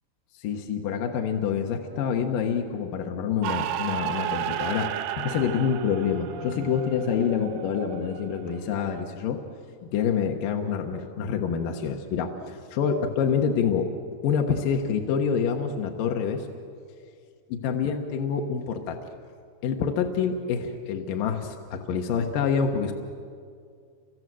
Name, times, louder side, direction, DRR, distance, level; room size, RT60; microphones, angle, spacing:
voice 1, 0.4-9.4 9.8-13.9 14.2-16.5 17.5-19.0 19.6-22.9, left 7 dB, 65° left, 3 dB, 2.8 m, -27 dB
sound 1, 3.4-9.0, right 11 dB, 75° right, 2.1 m, -33 dB
29.5 x 25.5 x 7.8 m, 2.3 s
omnidirectional pair, 4.6 m